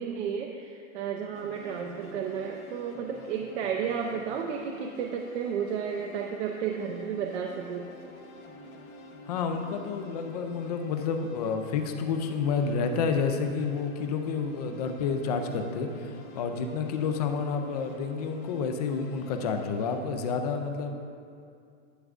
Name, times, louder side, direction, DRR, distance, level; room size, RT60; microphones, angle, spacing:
voice 1, 0.0-7.9, right 7 dB, 50° right, 2 dB, 0.6 m, -32 dB
tune-in-c-major-strings-and-synth, 1.3-20.0, left 2 dB, 80° left, 1.5 m, -48 dB
voice 2, 9.3-21.0, left 5 dB, 30° left, 6 dB, 0.4 m, -30 dB
11.0 x 9.0 x 2.4 m, 2.4 s
supercardioid pair, 160°, 42 cm